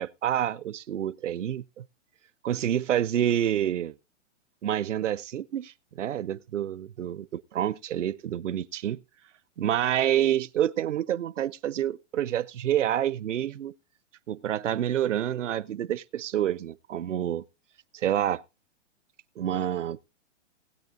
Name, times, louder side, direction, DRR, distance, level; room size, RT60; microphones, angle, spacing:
voice 1, 0.0-1.8 2.4-3.9 4.6-9.0 9.6-13.7 14.3-17.4 17.9-18.4 19.4-20.0, right 11 dB, 75° right, 0.6 m, -28 dB
19.5 x 8.7 x 2.5 m
hypercardioid pair, 120°, 37 cm